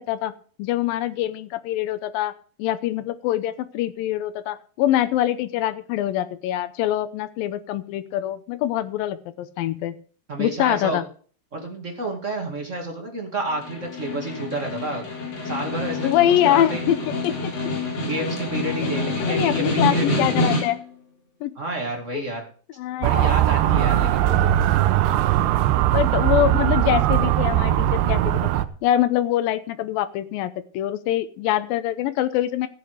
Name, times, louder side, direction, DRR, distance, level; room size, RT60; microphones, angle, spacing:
voice 1, 0.0-10.0 10.4-11.0 16.0-17.5 19.3-20.8 21.4-21.5 22.1-22.2 22.8-23.3 25.9-28.5 28.8-32.7, left 12 dB, 80° left, 11 dB, 2.1 m, -24 dB
voice 2, 10.3-11.0 11.5-15.0 15.4-16.8 18.0-20.5 21.5-22.4 23.0-24.8, right 2 dB, 30° right, 1 dB, 1.3 m, -30 dB
Snare drum, 13.5-20.9, left 2 dB, 55° left, 5.4 m, -27 dB
Motor vehicle (road) / Siren, 23.0-28.7, right 13 dB, 80° right, 2.7 m, -20 dB
15.0 x 7.8 x 5.0 m, 0.43 s
omnidirectional pair, 5.1 m